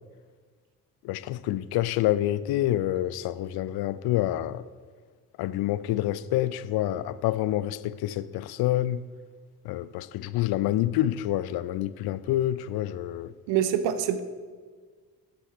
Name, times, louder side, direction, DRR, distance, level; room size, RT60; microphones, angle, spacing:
voice 1, 1.0-4.6 5.4-9.0 9.6-13.3, left 14 dB, 55° left, 0.5 m, -27 dB
voice 2, 13.5-14.2, right 9 dB, 65° right, 0.8 m, -25 dB
13.5 x 7.7 x 3.1 m
figure-of-eight pair, 40°, 47 cm